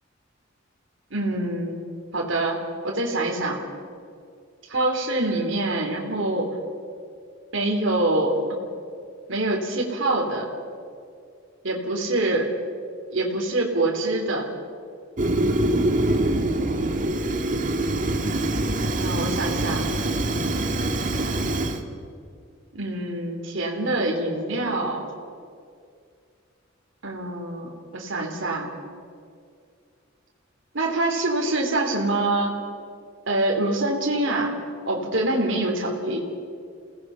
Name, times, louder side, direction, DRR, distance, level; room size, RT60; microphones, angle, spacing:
voice 1, 1.1-1.8 2.1-3.6 4.7-6.5 7.5-8.6 9.3-10.5 11.6-12.5 13.1-14.4 19.0-19.8 22.7-25.1 27.0-28.7 30.7-32.5 33.3-34.5 34.8-36.2, right 2 dB, 70° right, -1 dB, 3.1 m, -25 dB
Fire, 15.2-21.8, right 1 dB, 40° right, 1.6 m, -24 dB
28.5 x 18.0 x 5.6 m, 2.3 s
head